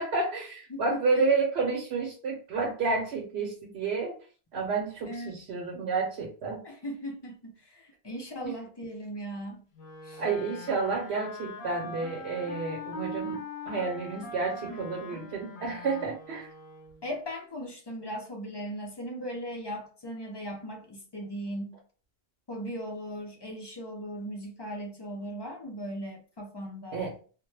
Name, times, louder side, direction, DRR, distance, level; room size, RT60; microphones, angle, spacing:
voice 1, 0.0-4.2 4.5-6.6 8.4-8.5 10.2-16.5 26.9-27.1, right 4 dB, 85° right, -1 dB, 0.9 m, -30 dB
voice 2, 0.7-1.3 5.0-5.3 6.6-9.6 10.0-10.2 14.7-15.2 17.0-21.8 22.5-27.1, equal, 40° left, 0 dB, 0.4 m, -38 dB
Wind instrument woodwind instrument, 9.7-17.1, left 1 dB, 90° left, 0.9 m, -41 dB
2.1 x 2.1 x 3.1 m, 0.39 s
omnidirectional pair, 1.1 m